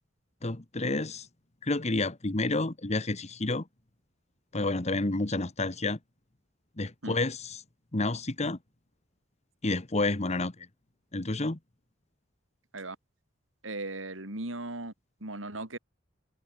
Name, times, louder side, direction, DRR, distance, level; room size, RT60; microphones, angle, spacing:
voice 1, 0.4-1.3 1.6-3.6 4.5-6.0 6.8-7.6 7.9-8.6 9.6-10.5 11.1-11.6, left 2 dB, 35° left, 1.3 m, -29 dB
voice 2, 13.6-14.9 15.2-15.8, right 2 dB, 75° right, 4.2 m, -37 dB
head